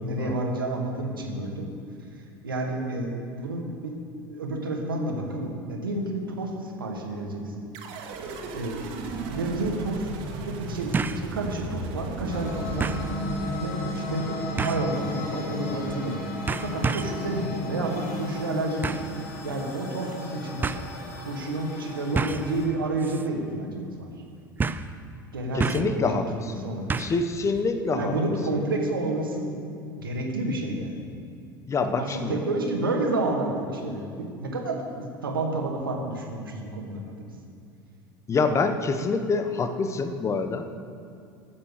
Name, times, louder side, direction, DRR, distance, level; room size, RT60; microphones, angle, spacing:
voice 1, 0.0-1.7 2.4-4.0 4.3-7.6 8.5-8.8 9.3-10.1 10.4-12.9 13.6-16.2 16.6-19.0 19.4-20.7 21.3-24.1 25.3-26.2 26.6-27.0 27.9-29.5 30.0-31.0 32.0-37.3, right 2 dB, 80° right, 1 dB, 1.9 m, -30 dB
sound 1, 7.7-14.2, right 3 dB, 55° right, 2.0 m, -36 dB
sound 2, 9.0-9.1 10.9-11.3 11.7-11.8 12.8-13.1 14.6-14.9 15.9-16.1 16.5-17.2 18.8-19.1 20.1-20.2 20.6-20.8 22.1-22.5 23.0-23.3 23.5-23.6 24.6-24.9 25.6-26.0 26.9-27.2 27.5-27.6, right 4 dB, 15° right, 0.5 m, -29 dB
sound 3, 12.3-22.7, left 1 dB, 60° left, 2.5 m, -34 dB
voice 2, 25.5-26.7 27.0-28.2 31.7-32.4 38.3-40.8, left 4 dB, 25° left, 8 dB, 1.0 m, -26 dB
13.0 x 7.6 x 6.7 m, 2.5 s
figure-of-eight pair, 75°, 11 cm